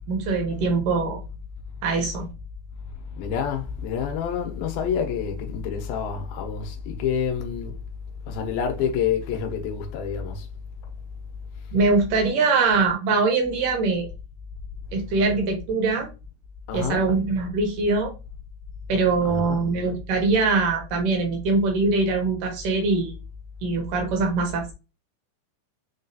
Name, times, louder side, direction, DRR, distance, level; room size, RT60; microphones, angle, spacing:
voice 1, 0.1-1.2 1.8-2.3 11.7-14.1 14.9-16.1 16.7-18.1 18.9-23.1 23.6-24.7, right 4 dB, 75° right, 2.2 m, -22 dB
voice 2, 3.2-7.8 8.3-10.5 16.7-17.0 19.2-19.6, left 7 dB, 85° left, 2.5 m, -28 dB
6.2 x 2.3 x 2.7 m
omnidirectional pair, 4.3 m